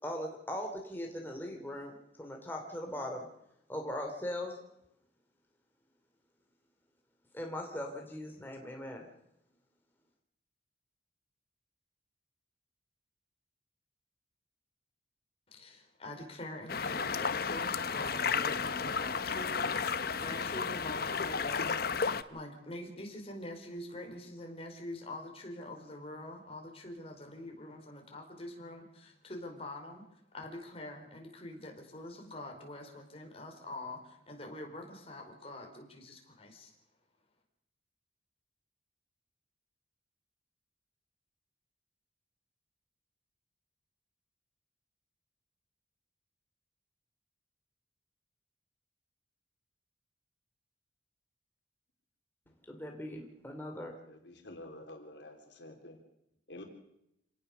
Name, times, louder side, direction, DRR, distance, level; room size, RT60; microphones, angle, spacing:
voice 1, 0.0-3.2 3.7-4.6 7.3-9.1 52.7-54.0, left 1 dB, 10° left, 1 dB, 2.7 m, -40 dB
voice 2, 15.5-21.8 22.3-36.7, left 1 dB, 30° left, 2 dB, 4.6 m, -45 dB
sound 1, 16.7-22.2, left 5 dB, 55° left, 0.9 m, -33 dB
voice 3, 54.0-56.0 56.5-56.6, left 1 dB, 75° left, 3 dB, 3.6 m, -49 dB
27.0 x 18.5 x 6.7 m, 0.81 s
head